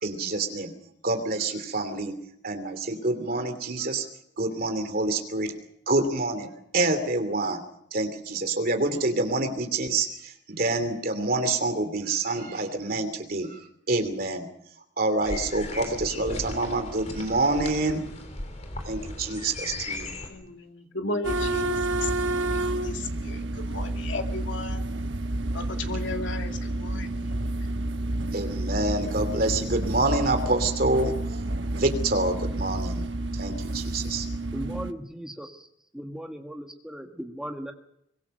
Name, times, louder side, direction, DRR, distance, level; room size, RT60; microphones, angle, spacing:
voice 1, 0.0-0.7 1.0-4.0 4.4-5.5 5.9-7.6 7.9-14.5 15.0-18.1 18.9-20.1 28.3-33.1 33.3-34.3, right 2 dB, 50° right, 7 dB, 2.9 m, -27 dB
sound 1, 15.2-20.3, left 2 dB, 35° left, 3.6 m, -37 dB
voice 2, 20.3-24.8 25.5-27.5, left 2 dB, 75° left, 4 dB, 2.4 m, -35 dB
sound 2, 21.2-34.9, right 2 dB, 70° right, 1.2 m, -30 dB
voice 3, 34.5-35.6 35.9-37.7, equal, 5° right, 4 dB, 1.7 m, -37 dB
23.5 x 21.5 x 6.6 m, 0.76 s
head